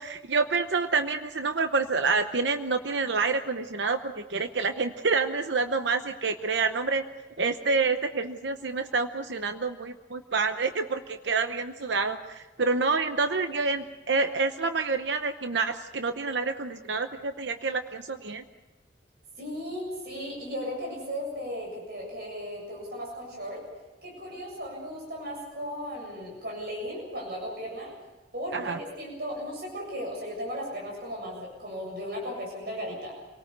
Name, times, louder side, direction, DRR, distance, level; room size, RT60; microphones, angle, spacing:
voice 1, 0.0-7.0 7.4-18.4 28.5-28.8, right 4 dB, 80° right, 8 dB, 0.9 m, -28 dB
voice 2, 19.4-23.6 24.0-27.9 28.3-33.1, equal, 60° right, -1 dB, 7.5 m, -36 dB
27.5 x 18.5 x 6.8 m, 1.2 s
head